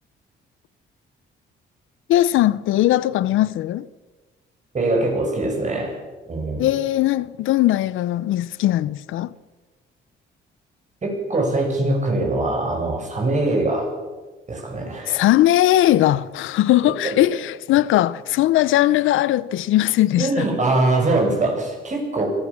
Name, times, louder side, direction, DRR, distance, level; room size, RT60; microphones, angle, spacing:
voice 1, 2.1-3.9 6.6-9.3 15.1-20.5, left 14 dB, 85° left, 0.7 m, -19 dB
voice 2, 4.7-6.0 6.3-6.7 11.0-13.9 14.5-15.2 17.0-17.1 20.2-22.3, right 2 dB, 35° right, 7.6 m, -22 dB
24.0 x 15.5 x 7.3 m
cardioid pair, 90°, 20 cm